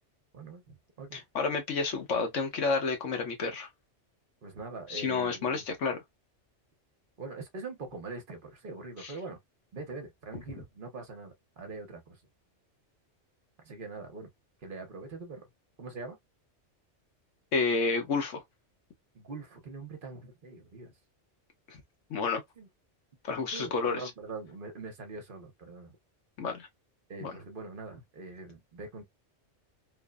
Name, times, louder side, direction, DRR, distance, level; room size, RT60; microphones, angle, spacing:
voice 1, 0.3-1.2 4.4-5.6 7.2-9.4 9.7-12.2 13.6-14.3 14.6-15.5 15.8-16.2 19.1-20.9 22.6-22.7 23.5-26.0 27.1-29.1, right 3 dB, 50° right, 0.8 m, -43 dB
voice 2, 1.1-3.7 4.9-6.0 9.0-9.1 17.5-18.4 21.7-21.8 22.1-22.4 23.3-24.0 26.4-26.7 27.2-27.3, left 4 dB, 90° left, 1.3 m, -30 dB
3.1 x 2.0 x 2.2 m
omnidirectional pair, 1.2 m